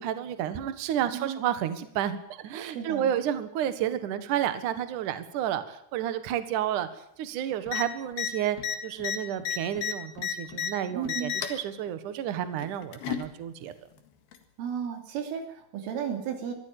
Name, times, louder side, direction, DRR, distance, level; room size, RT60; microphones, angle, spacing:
voice 1, 0.0-8.6 8.8-13.7, right 10 dB, 60° right, 11 dB, 2.3 m, -31 dB
voice 2, 2.6-3.1 10.9-11.3 14.6-16.5, right 8 dB, 80° right, 4 dB, 5.6 m, -34 dB
sound 1, 7.7-7.8 8.1-8.3 8.6-10.7 11.0-11.6 12.6-13.3 14.3-14.4, left 9 dB, 60° left, 3.3 m, -31 dB
24.0 x 14.5 x 8.9 m, 0.71 s
omnidirectional pair, 5.7 m